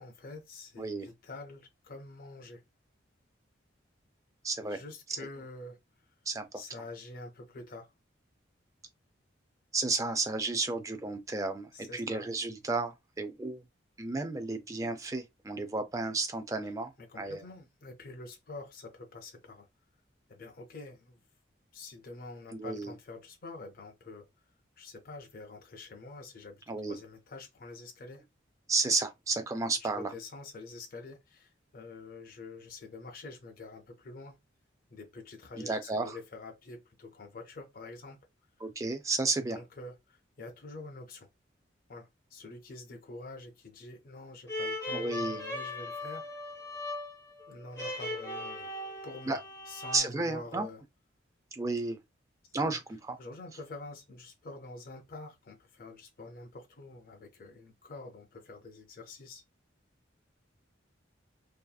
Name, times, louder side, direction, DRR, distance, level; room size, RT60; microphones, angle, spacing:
voice 1, 0.0-2.6 4.6-5.8 6.5-7.9 11.7-12.3 16.6-16.7 17.0-19.7 20.3-21.2 21.7-24.2 24.8-28.2 29.8-34.4 34.9-38.2 39.5-41.3 41.9-46.3 47.5-48.7 49.0-50.8 52.6-52.8 53.2-59.4, left 2 dB, 45° left, 0.4 m, -46 dB
voice 2, 4.4-4.8 6.3-6.5 9.7-13.6 14.0-17.4 22.5-22.9 26.7-27.0 28.7-30.1 35.6-36.2 38.6-39.6 44.9-45.4 49.3-49.4 49.9-50.7 51.5-52.0 52.5-53.2, right 3 dB, 15° right, 0.3 m, -32 dB
sound 1, 44.5-50.0, left 1 dB, 15° left, 0.7 m, -38 dB
2.7 x 2.4 x 2.2 m
head